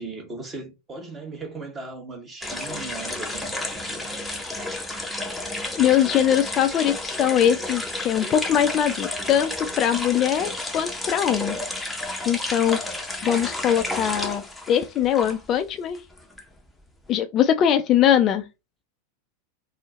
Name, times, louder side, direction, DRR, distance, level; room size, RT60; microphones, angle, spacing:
voice 1, 0.0-4.4, right 3 dB, 15° right, 1.0 m, -38 dB
sound 1, 2.4-15.6 15.9-17.1, left 2 dB, 5° left, 0.7 m, -31 dB
voice 2, 5.8-11.6 12.3-12.8 13.2-16.0 17.1-18.4, left 10 dB, 30° left, 0.4 m, -22 dB
4.3 x 2.0 x 4.0 m
figure-of-eight pair, 90°, 0 cm